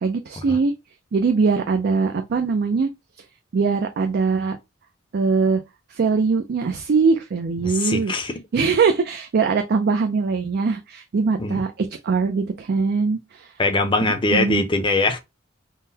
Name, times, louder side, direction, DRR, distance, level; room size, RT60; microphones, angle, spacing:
voice 1, 0.0-0.7 1.1-2.9 3.5-4.6 5.1-5.6 5.9-8.1 8.5-11.7 12.0-13.5 14.0-14.6, right 4 dB, 50° right, 0.4 m, -21 dB
voice 2, 7.6-8.3 11.4-11.6 13.6-15.2, left 2 dB, 25° left, 0.6 m, -22 dB
3.7 x 2.1 x 2.7 m
head